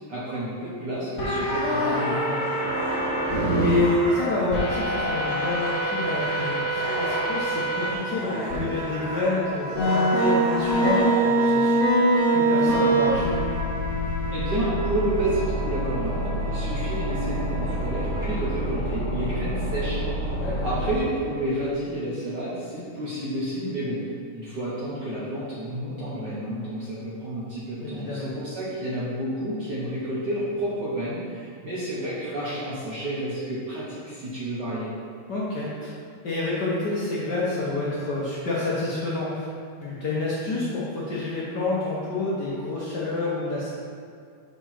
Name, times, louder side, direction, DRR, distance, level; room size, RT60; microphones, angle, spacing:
voice 1, 0.1-2.2 14.3-20.0 20.6-24.0 24.3-34.9, right 1 dB, 55° right, -8 dB, 1.3 m, -30 dB
sound 1, 1.2-3.7 4.5-7.9 8.5-8.6 9.7-21.0, right 1 dB, 35° left, 1.7 m, -25 dB
sound 2, 1.3-11.5, equal, 20° left, 1.4 m, -35 dB
voice 2, 2.0-2.5 3.5-11.8 12.3-13.4 20.4-20.7 27.8-28.3 35.3-35.9 36.2-39.5 39.8-43.7, left 2 dB, 80° left, -7 dB, 0.9 m, -28 dB
sound 3, 8.2-18.4, right 1 dB, 90° right, 2.1 m, -38 dB
5.8 x 4.6 x 5.9 m, 2.3 s
omnidirectional pair, 3.3 m